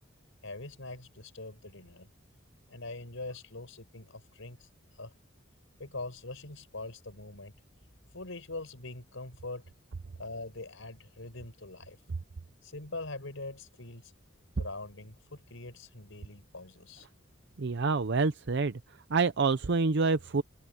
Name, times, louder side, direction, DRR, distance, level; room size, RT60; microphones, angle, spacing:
voice 1, 0.4-2.1 2.7-4.7 5.0-5.1 5.8-7.5 8.1-9.6 10.2-12.0 12.6-14.1 14.6-17.1, left 2 dB, 85° left, 4.8 m, -43 dB
voice 2, 17.6-18.7 19.1-20.4, right 4 dB, 60° right, 0.6 m, -27 dB
head